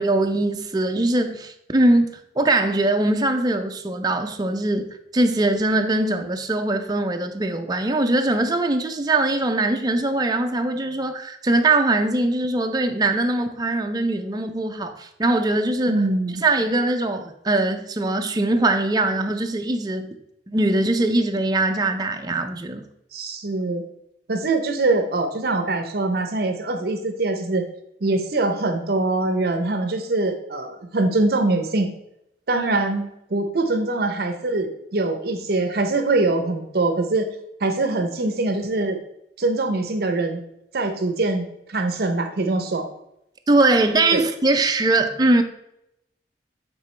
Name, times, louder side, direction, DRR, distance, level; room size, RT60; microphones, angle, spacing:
voice 1, 0.0-16.0 16.4-20.1 20.5-22.8 43.5-45.4, right 2 dB, 25° right, 5 dB, 0.5 m, -21 dB
voice 2, 15.9-16.4 23.1-23.8 24.3-27.6 28.0-31.9 32.5-37.3 37.6-39.0 39.4-40.4 40.7-42.9 44.1-44.2, right 2 dB, 60° right, 6 dB, 0.7 m, -23 dB
8.8 x 3.8 x 3.2 m, 0.81 s
head